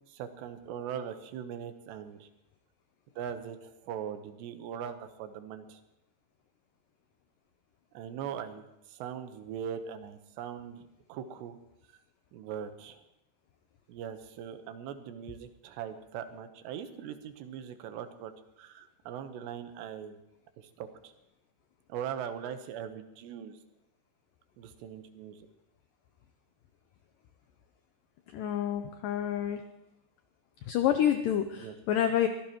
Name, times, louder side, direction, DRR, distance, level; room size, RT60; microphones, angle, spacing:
voice 1, 0.1-2.3 3.2-5.8 7.9-11.6 12.3-13.0 13.9-20.2 20.6-21.1 21.9-23.6 24.6-25.5 31.6-31.8, right 8 dB, 85° right, 8 dB, 3.2 m, -41 dB
voice 2, 28.3-29.6 30.7-32.3, left 10 dB, 90° left, 7 dB, 1.9 m, -28 dB
23.5 x 16.0 x 3.0 m, 0.87 s
omnidirectional pair, 4.9 m